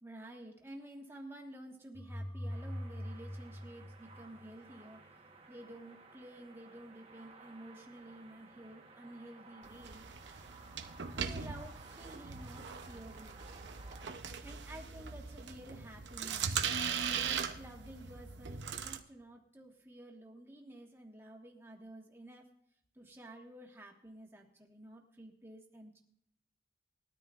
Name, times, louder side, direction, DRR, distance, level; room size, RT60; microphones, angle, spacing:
voice 1, 0.0-5.1 5.5-10.0 11.1-13.4 14.4-16.5 17.0-22.5 22.9-26.0, right 1 dB, 15° right, 0 dB, 1.5 m, -51 dB
sound 1, 2.0-4.8, equal, 15° left, 0.4 m, -43 dB
sound 2, 2.5-14.1, right 3 dB, 35° right, 1.2 m, -57 dB
sound 3, 9.6-19.0, right 6 dB, 90° right, 0.8 m, -40 dB
20.5 x 13.0 x 2.5 m, 0.69 s
head